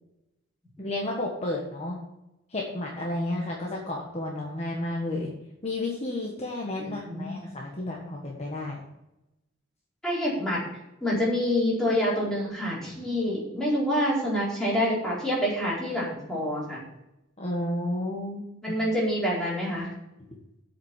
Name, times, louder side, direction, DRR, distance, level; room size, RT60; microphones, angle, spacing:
voice 1, 0.8-2.0 2.5-5.3 5.6-8.8 17.4-18.8, left 1 dB, 30° left, -2 dB, 1.4 m, -32 dB
voice 2, 6.8-7.4 10.0-10.6 11.0-16.8 18.6-19.9, equal, 5° left, -7 dB, 4.2 m, -27 dB
8.0 x 5.8 x 7.5 m, 0.90 s
head